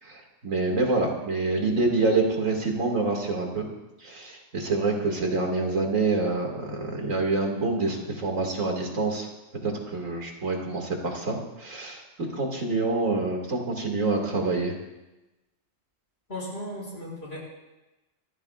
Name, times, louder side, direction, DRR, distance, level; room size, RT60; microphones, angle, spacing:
voice 1, 0.0-3.7 4.0-9.3 9.6-12.0 12.3-14.7, right 3 dB, 85° right, 1 dB, 2.7 m, -26 dB
voice 2, 16.3-17.4, left 1 dB, 50° left, -4 dB, 6.8 m, -36 dB
26.0 x 14.5 x 2.5 m, 1.0 s
omnidirectional pair, 1.3 m